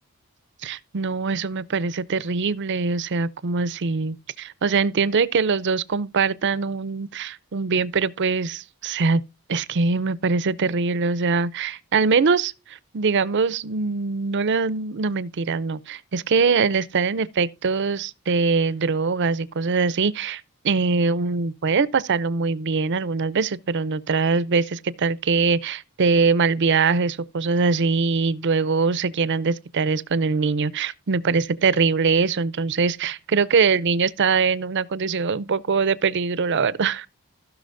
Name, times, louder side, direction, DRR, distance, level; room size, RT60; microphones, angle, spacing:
voice 1, 0.6-9.2 9.5-37.1, right 4 dB, 50° right, 0.5 m, -22 dB
16.0 x 6.0 x 2.6 m
head